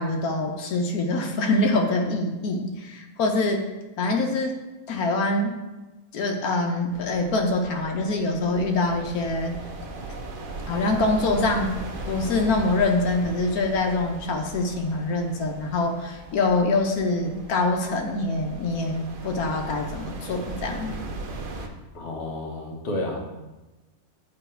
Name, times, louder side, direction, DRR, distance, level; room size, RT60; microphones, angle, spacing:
voice 1, 0.0-3.6 4.0-4.6 4.9-5.6 6.1-9.6 10.7-11.7 12.1-21.0, left 2 dB, 85° left, 3 dB, 1.2 m, -25 dB
sound 1, 6.9-21.7, right 2 dB, 50° right, 0.6 m, -38 dB
voice 2, 21.9-23.3, left 1 dB, 55° left, 1 dB, 1.2 m, -31 dB
9.1 x 3.3 x 4.4 m, 1.1 s
omnidirectional pair, 1.5 m